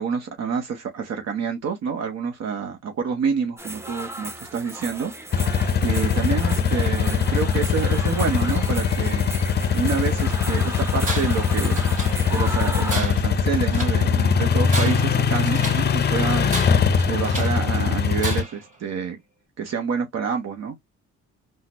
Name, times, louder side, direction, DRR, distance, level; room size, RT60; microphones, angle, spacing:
voice 1, 0.0-9.2 9.5-11.8 12.3-19.2 19.6-20.8, right 6 dB, 60° right, 0.8 m, -28 dB
sound 1, 3.6-13.0, right 1 dB, 10° right, 0.7 m, -35 dB
sound 2, 5.3-18.4, left 6 dB, 35° left, 0.5 m, -21 dB
Tools, 11.0-11.5 11.8-12.5 12.9-14.0 14.5-15.9 16.5-17.6 18.2-18.7, right 2 dB, 25° right, 1.8 m, -33 dB
3.7 x 2.1 x 2.9 m
cardioid pair, 90°, 30 cm